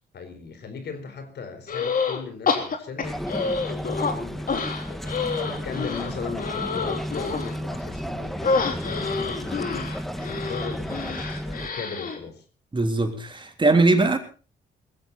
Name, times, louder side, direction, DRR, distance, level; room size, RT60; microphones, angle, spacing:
voice 1, 0.1-4.5 4.9-12.4, left 5 dB, 65° left, 9 dB, 4.5 m, -38 dB
sound 1, 1.7-2.2 2.5-4.1 4.5-7.5 8.4-12.2, left 4 dB, 50° left, 3.7 m, -28 dB
sound 2, 3.0-11.7, equal, ahead, 1.9 m, -33 dB
voice 2, 12.7-14.2, right 2 dB, 25° right, 5 dB, 3.3 m, -20 dB
20.0 x 15.5 x 4.2 m, 0.36 s
cardioid pair, 85°, 18 cm